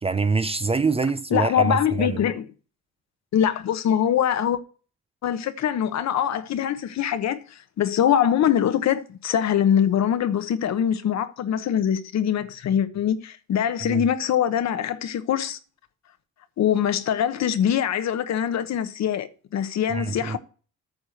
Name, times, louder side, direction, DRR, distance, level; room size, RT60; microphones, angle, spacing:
voice 1, 0.0-2.2 13.8-14.0 19.9-20.4, right 4 dB, 20° right, 0.5 m, -25 dB
voice 2, 1.3-2.5 3.3-4.6 5.2-15.6 16.6-20.4, left 9 dB, 60° left, 1.1 m, -23 dB
8.9 x 4.9 x 7.5 m
cardioid pair, 110°, 31 cm